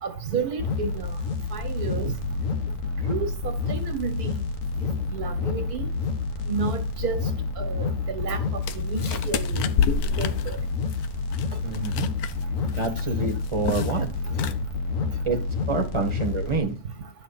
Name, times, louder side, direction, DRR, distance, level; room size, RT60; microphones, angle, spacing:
voice 1, 0.0-1.2 1.5-2.1 3.1-4.3 5.1-5.9 6.5-7.2 7.6-9.7 10.2-10.6 14.3-14.4, right 5 dB, 90° right, 1.9 m, -31 dB
sound 1, 0.6-16.6, left 4 dB, 60° left, 1.5 m, -29 dB
sound 2, 8.6-12.4 12.7-13.0 13.3-14.0 14.3-14.5, left 7 dB, 80° left, 1.2 m, -29 dB
voice 2, 11.6-12.1 12.8-14.1 15.2-15.4 15.7-16.8, right 4 dB, 20° right, 1.5 m, -27 dB
10.5 x 6.4 x 4.2 m
omnidirectional pair, 1.6 m